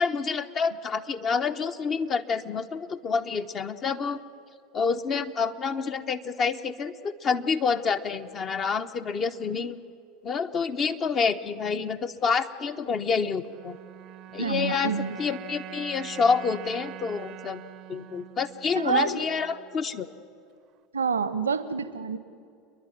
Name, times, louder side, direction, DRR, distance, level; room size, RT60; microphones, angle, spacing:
voice 1, 0.0-4.2 4.7-9.8 10.2-13.8 14.3-14.9 15.2-17.6 17.9-20.1, left 5 dB, 35° left, 8 dB, 1.1 m, -28 dB
sound 1, 13.4-19.8, right 13 dB, 50° right, 0.7 m, -44 dB
voice 2, 14.4-15.2 18.7-19.3 20.9-22.2, right 5 dB, 85° right, 14 dB, 0.9 m, -27 dB
28.5 x 11.0 x 9.4 m, 2.3 s
figure-of-eight pair, 80°, 0 cm